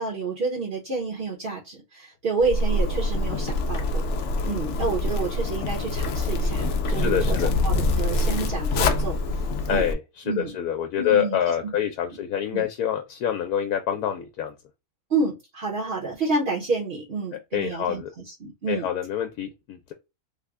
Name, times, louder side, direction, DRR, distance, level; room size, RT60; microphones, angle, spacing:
voice 1, 0.0-4.0 4.4-9.9 10.2-10.6 11.0-11.7 12.1-12.2 12.5-12.7 15.1-18.9, right 4 dB, 45° right, 1.0 m, -29 dB
Zipper (clothing), 2.4-9.9, left 2 dB, 65° left, 0.8 m, -25 dB
voice 2, 7.0-7.5 9.7-10.0 10.3-14.5 17.5-18.1 18.7-19.9, left 9 dB, 85° left, 1.1 m, -26 dB
3.3 x 2.2 x 3.5 m
omnidirectional pair, 1.5 m